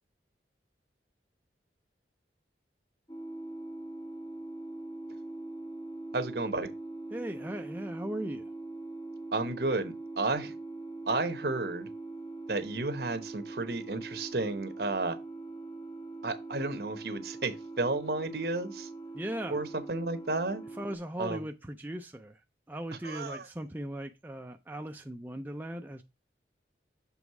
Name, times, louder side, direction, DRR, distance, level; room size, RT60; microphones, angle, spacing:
sound 1, 3.1-21.0, right 2 dB, 20° left, 0.7 m, -42 dB
voice 1, 6.1-6.7 9.3-10.5 11.1-11.9 12.5-15.2 16.2-18.9 19.5-20.6 21.2-21.4 23.0-23.5, right 2 dB, 65° right, 1.0 m, -32 dB
voice 2, 7.1-8.5 19.1-19.6 20.8-22.4 22.7-26.0, right 1 dB, 10° right, 0.4 m, -38 dB
7.2 x 3.5 x 4.7 m
head